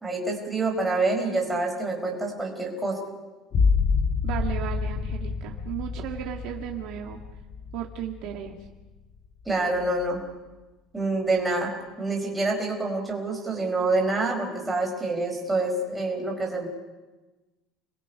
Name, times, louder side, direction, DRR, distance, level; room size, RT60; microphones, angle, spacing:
voice 1, 0.0-3.0 9.4-10.2 10.9-11.7 12.0-16.7, right 2 dB, 5° right, -1 dB, 4.6 m, -27 dB
sound 1, 3.5-9.0 9.4-10.0, left 5 dB, 35° left, 1.6 m, -28 dB
voice 2, 4.2-7.2 7.7-8.6, right 11 dB, 50° right, 1 dB, 1.8 m, -35 dB
30.0 x 21.5 x 5.5 m, 1.2 s
cardioid pair, 170°, 0 cm